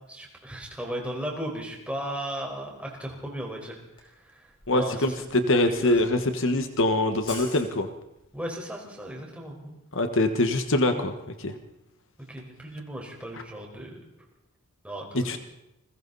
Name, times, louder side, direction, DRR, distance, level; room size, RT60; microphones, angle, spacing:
voice 1, 0.1-3.8 4.2-4.4 4.7-5.0 5.6-5.9 8.3-9.8 10.9-11.0 12.3-13.9 14.8-15.4, right 1 dB, 5° right, -1 dB, 4.8 m, -36 dB
Camera, 3.8-8.3, left 3 dB, 25° left, 5.5 m, -46 dB
voice 2, 4.7-7.9 9.9-11.6 13.3-13.4 15.1-15.4, left 1 dB, 60° left, 7 dB, 1.5 m, -24 dB
30.0 x 21.5 x 4.1 m, 0.87 s
head